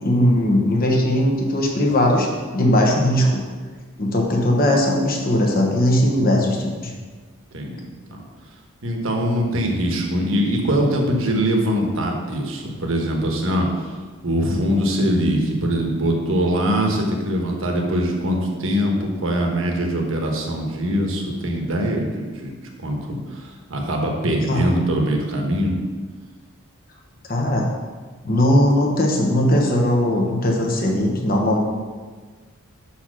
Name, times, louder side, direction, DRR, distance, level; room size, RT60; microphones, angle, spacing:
voice 1, 0.0-2.3 2.5-3.4 4.0-6.9 24.5-24.6 27.3-27.7 28.2-31.6, left 1 dB, 40° left, 0 dB, 1.0 m, -19 dB
voice 2, 7.5-8.2 8.8-14.0 14.2-25.7, equal, 60° right, 1 dB, 1.1 m, -22 dB
5.8 x 4.3 x 6.2 m, 1.4 s
head